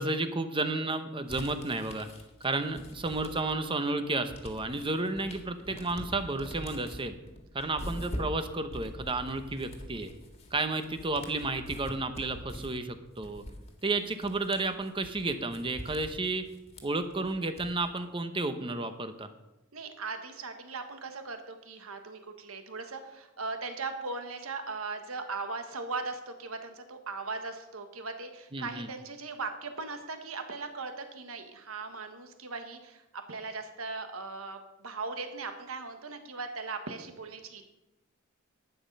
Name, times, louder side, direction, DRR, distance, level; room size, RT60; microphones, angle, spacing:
voice 1, 0.0-2.1 2.4-7.2 7.5-10.1 10.5-13.4 13.8-16.4 16.8-19.3 28.5-28.9, right 2 dB, 25° right, 9 dB, 0.9 m, -32 dB
sound 1, 1.3-3.7 4.0-18.0, equal, 30° left, 1.8 m, -44 dB
voice 2, 19.7-33.0 33.3-37.6, right 3 dB, 80° right, 7 dB, 1.4 m, -39 dB
11.5 x 9.2 x 5.3 m, 0.98 s
head